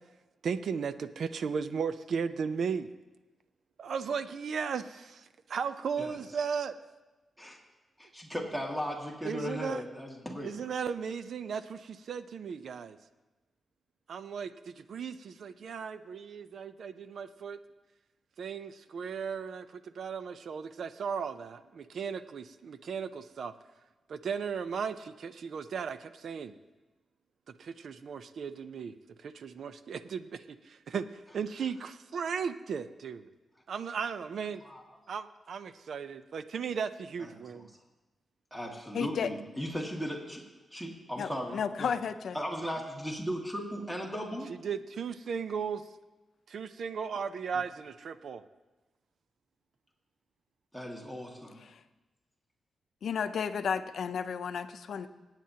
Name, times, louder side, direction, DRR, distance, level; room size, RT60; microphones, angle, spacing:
voice 1, 0.4-2.9 3.8-6.7 9.2-9.8 10.4-13.0 14.1-17.6 18.4-23.5 24.1-26.5 27.6-33.3 33.7-34.6 35.1-37.7 44.6-45.8 46.5-48.4, right 6 dB, 70° right, 12 dB, 0.5 m, -36 dB
voice 2, 8.0-10.6 34.6-34.8 37.2-37.7 38.5-41.9 42.3-44.5 47.5-47.6 50.7-51.6, equal, 5° right, -1 dB, 2.0 m, -37 dB
voice 3, 38.9-39.3 41.2-42.4 53.0-55.1, left 7 dB, 75° left, 10 dB, 0.6 m, -32 dB
25.0 x 9.0 x 2.8 m, 1.1 s
wide cardioid pair, 110°, 0 cm